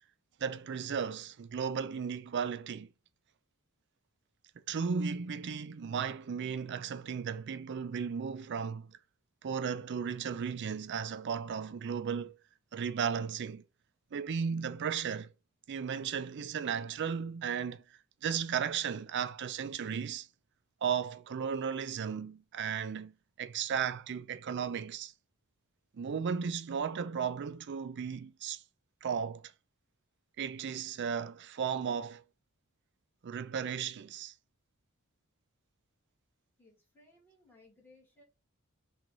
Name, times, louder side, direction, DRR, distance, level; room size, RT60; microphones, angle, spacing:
voice 1, 0.4-2.9 4.7-9.0 9.4-12.3 12.7-13.6 14.1-15.3 15.7-17.8 18.2-20.3 20.8-25.1 25.9-28.6 29.0-29.5 30.4-32.2 33.2-34.3, right 7 dB, 55° right, 0.4 m, -35 dB
voice 2, 36.6-38.2, left 2 dB, 10° left, 2.0 m, -62 dB
5.9 x 2.5 x 3.1 m
head